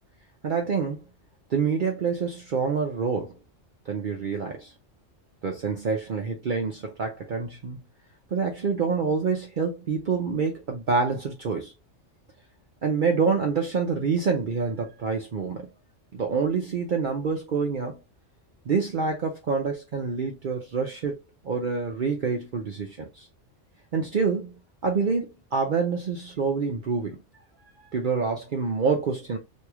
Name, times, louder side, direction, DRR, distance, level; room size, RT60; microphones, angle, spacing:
voice 1, 0.4-1.0 1.5-3.3 3.9-4.7 5.4-7.8 8.3-11.7 12.8-15.7 16.1-18.0 18.7-21.2 21.4-23.3 23.9-27.2 27.9-29.4, right 5 dB, 50° right, 0.7 m, -27 dB
3.0 x 2.7 x 3.5 m
omnidirectional pair, 1.2 m